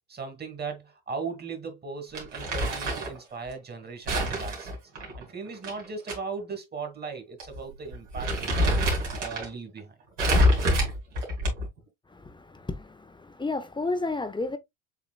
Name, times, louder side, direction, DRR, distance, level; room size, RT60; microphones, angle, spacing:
voice 1, 0.1-4.8 5.2-8.7 9.1-9.9, right 4 dB, 25° right, 1.9 m, -38 dB
Crumpling crinkling, 2.1-3.2 4.1-6.2 6.5-6.6 7.4-7.6 7.9-9.5 10.2-11.8, equal, 85° right, 2.4 m, -26 dB
voice 2, 12.1-14.6, left 3 dB, 15° left, 0.7 m, -32 dB
7.6 x 3.0 x 2.3 m
hypercardioid pair, 75°, 36 cm